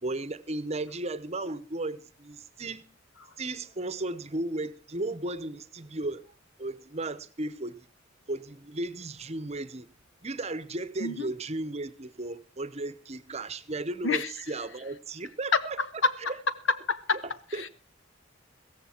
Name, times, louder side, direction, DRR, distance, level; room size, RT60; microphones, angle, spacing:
voice 1, 0.0-2.9 3.4-6.3 6.6-7.9 8.3-9.9 10.2-15.8 17.1-17.7, right 2 dB, 35° right, 0.9 m, -35 dB
voice 2, 15.5-16.3 16.7-17.2 17.6-17.7, left 4 dB, 70° left, 1.2 m, -27 dB
16.0 x 14.5 x 4.4 m
head